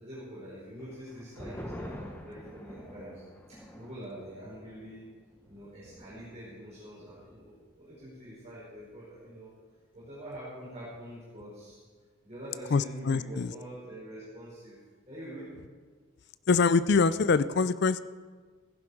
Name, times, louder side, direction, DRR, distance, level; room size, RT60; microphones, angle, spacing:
voice 1, 0.0-3.2 3.5-5.0 5.5-9.5 9.9-11.8 12.2-14.8 15.1-15.5, equal, 30° right, -10 dB, 5.1 m, -45 dB
sound 1, 0.8-7.7 8.0-8.1 8.5-9.0, equal, 10° left, 1.0 m, -47 dB
voice 2, 12.7-13.5 16.5-18.0, left 4 dB, 50° left, 15 dB, 0.4 m, -24 dB
16.0 x 11.0 x 4.9 m, 1.5 s
head